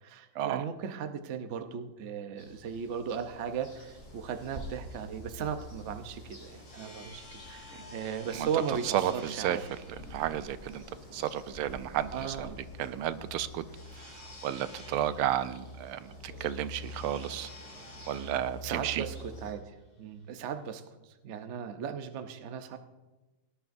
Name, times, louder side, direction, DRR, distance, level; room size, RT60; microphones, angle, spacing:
voice 1, 0.0-9.6 12.1-12.6 18.6-22.8, right 7 dB, 70° right, 8 dB, 0.6 m, -37 dB
sound 1, 2.4-19.5, equal, 45° left, 5.1 m, -48 dB
sound 2, 4.6-8.5, equal, 35° right, 1.9 m, -48 dB
sound 3, 6.4-20.6, left 1 dB, 80° left, 5.8 m, -53 dB
voice 2, 8.3-9.8 10.1-10.8 11.1-12.5 12.8-13.6 13.9-17.5 18.1-19.1, right 11 dB, 85° right, 13 dB, 1.5 m, -33 dB
18.5 x 11.0 x 2.6 m, 1.1 s
omnidirectional pair, 2.3 m